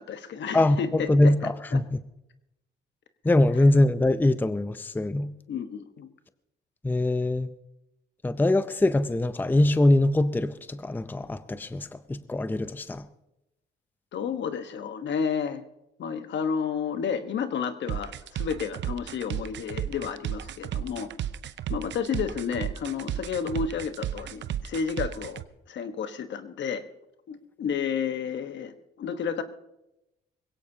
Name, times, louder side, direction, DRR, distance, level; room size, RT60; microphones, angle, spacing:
voice 1, 0.0-1.8 5.5-6.1 14.1-15.6 16.0-21.1 21.7-26.8 27.3-29.4, left 6 dB, 65° left, 1.2 m, -31 dB
voice 2, 0.5-2.0 3.2-5.3 6.8-7.5 8.2-13.1, left 1 dB, 10° left, 0.6 m, -23 dB
sound 1, 17.9-25.4, right 11 dB, 65° right, 0.7 m, -33 dB
21.5 x 17.0 x 2.8 m
cardioid pair, 90°, 20 cm